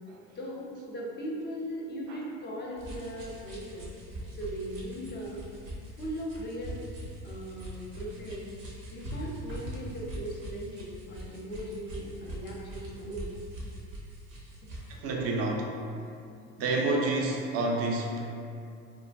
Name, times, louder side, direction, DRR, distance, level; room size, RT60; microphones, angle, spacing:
voice 1, 0.4-3.9 4.4-5.4 6.0-6.8 7.2-8.5 8.9-13.3, equal, 25° left, -2 dB, 0.5 m, -38 dB
sound 1, 2.8-15.0, right 1 dB, 75° right, 0.8 m, -42 dB
voice 2, 14.9-15.8 16.6-18.2, right 2 dB, 40° right, -1 dB, 0.4 m, -29 dB
2.8 x 2.1 x 2.5 m, 2.5 s
hypercardioid pair, 70°, 38 cm